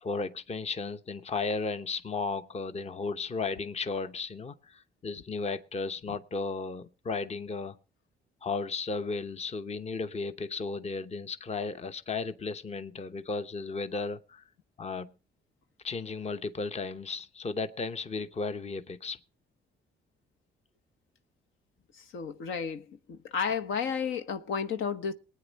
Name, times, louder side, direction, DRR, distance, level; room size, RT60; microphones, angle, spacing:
voice 1, 0.0-7.8 8.4-14.4 14.8-15.1 15.8-19.2, left 4 dB, 35° left, 0.9 m, -34 dB
voice 2, 21.9-25.1, left 6 dB, 80° left, 1.1 m, -32 dB
21.0 x 9.2 x 4.1 m
cardioid pair, 90°, 20 cm